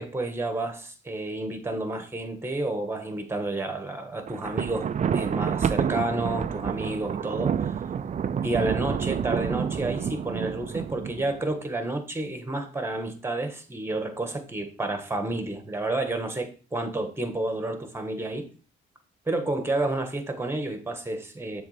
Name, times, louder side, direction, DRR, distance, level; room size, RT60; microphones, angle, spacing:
voice 1, 0.0-7.8 8.4-18.5 19.3-21.6, right 2 dB, 10° right, 1.5 m, -30 dB
Thunder, 4.3-11.5, right 7 dB, 40° right, 0.5 m, -29 dB
7.0 x 3.9 x 5.0 m
cardioid pair, 90°, 20 cm